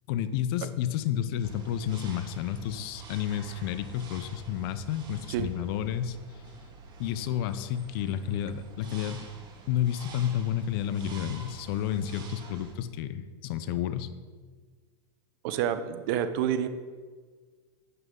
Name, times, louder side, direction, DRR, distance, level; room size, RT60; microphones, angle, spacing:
voice 1, 0.1-6.2 7.0-9.3 9.7-14.1, left 10 dB, 60° left, 12 dB, 0.8 m, -31 dB
sound 1, 1.4-12.7, right 4 dB, 30° right, 1.9 m, -48 dB
voice 2, 15.4-16.7, right 9 dB, 60° right, 11 dB, 0.9 m, -28 dB
11.0 x 8.1 x 3.9 m, 1.5 s
hypercardioid pair, 110°, 14 cm